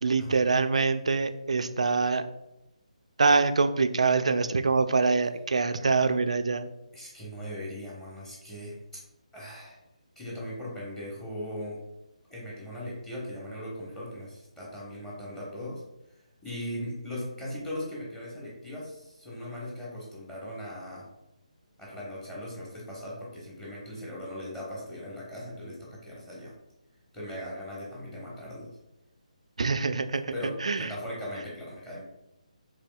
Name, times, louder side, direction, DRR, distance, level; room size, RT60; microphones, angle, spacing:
voice 1, 0.0-2.3 3.2-6.7 29.6-30.2 30.6-30.9, right 4 dB, 55° right, 10 dB, 0.4 m, -24 dB
voice 2, 6.9-8.8 9.3-9.8 10.2-11.8 12.3-15.8 16.4-21.1 21.8-26.5 27.1-28.7 30.3-32.0, left 1 dB, 5° left, -6 dB, 1.1 m, -39 dB
6.6 x 3.2 x 2.3 m, 0.89 s
figure-of-eight pair, 145°, 4 cm